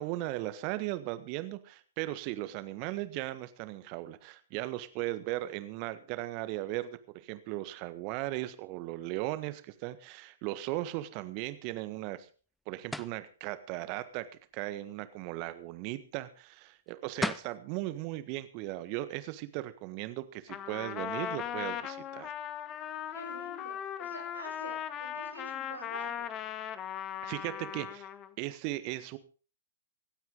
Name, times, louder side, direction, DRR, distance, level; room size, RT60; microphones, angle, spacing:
voice 1, 0.0-12.3 12.7-14.3 14.5-22.3 27.2-28.1 28.4-29.2, right 16 dB, 35° right, 12 dB, 1.5 m, -37 dB
sound 1, 12.9-13.2 16.9-17.0 17.2-17.6, left 2 dB, 5° left, 0.6 m, -33 dB
Trumpet, 20.5-28.3, left 10 dB, 25° left, 1.1 m, -38 dB
voice 2, 23.1-26.3, right 1 dB, 80° right, -1 dB, 6.0 m, -47 dB
25.5 x 9.2 x 3.9 m, 0.37 s
figure-of-eight pair, 115°, 0 cm